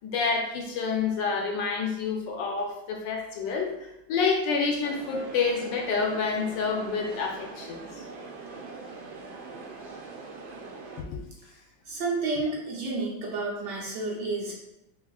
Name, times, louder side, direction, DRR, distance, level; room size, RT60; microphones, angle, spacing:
voice 1, 0.0-7.8 11.0-11.1, left 5 dB, 75° left, 1 dB, 1.1 m, -28 dB
sound 1, 4.8-11.0, right 3 dB, 85° right, 1.4 m, -42 dB
voice 2, 11.9-14.5, right 3 dB, 65° right, -3 dB, 1.3 m, -30 dB
3.6 x 3.4 x 2.3 m, 0.87 s
omnidirectional pair, 2.1 m